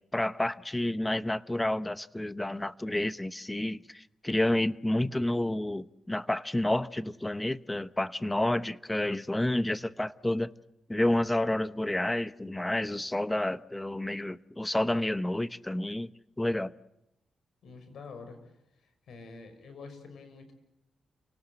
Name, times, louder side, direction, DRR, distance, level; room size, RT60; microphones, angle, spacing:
voice 1, 0.1-10.5 10.9-16.1 16.4-16.7, left 1 dB, 10° left, 0.9 m, -30 dB
voice 2, 17.6-18.4 18.8-20.5, left 4 dB, 75° left, 6.0 m, -47 dB
29.5 x 18.5 x 8.1 m
cardioid pair, 85°, 0 cm